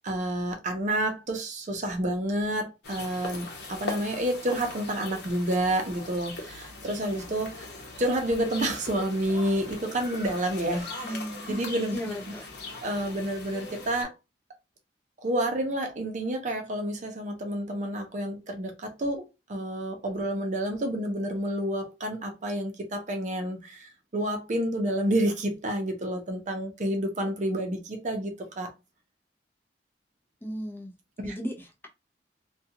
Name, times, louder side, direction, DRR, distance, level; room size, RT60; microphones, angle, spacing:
voice 1, 0.0-7.7 8.0-11.0 11.5-12.0 12.8-14.1 15.2-19.2 19.5-28.7 31.2-31.4, right 1 dB, 45° right, 0.6 m, -29 dB
sound 1, 2.8-14.0, left 2 dB, 65° left, 0.8 m, -40 dB
voice 2, 11.0-11.6 11.9-12.5 30.4-30.9 31.2-31.9, equal, 15° left, 0.6 m, -36 dB
2.4 x 2.2 x 2.8 m
head